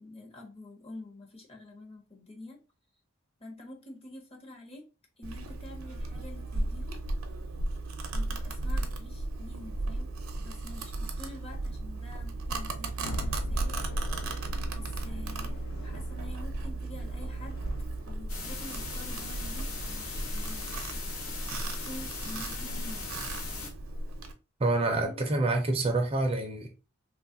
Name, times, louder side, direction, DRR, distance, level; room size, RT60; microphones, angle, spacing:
voice 1, 0.0-2.6 3.4-4.9 5.2-7.0 8.1-13.8 14.7-17.6 18.1-20.7 21.5-23.3 24.9-25.2, left 2 dB, 30° left, 0.7 m, -47 dB
Domestic sounds home sounds, 5.2-24.3, right 2 dB, 85° right, 0.6 m, -35 dB
sound 1, 13.1-18.2, equal, 60° left, 0.4 m, -40 dB
sound 2, 18.3-23.7, left 3 dB, 85° left, 0.8 m, -39 dB
voice 2, 24.6-26.9, right 2 dB, 30° right, 0.5 m, -27 dB
3.0 x 2.3 x 2.5 m
head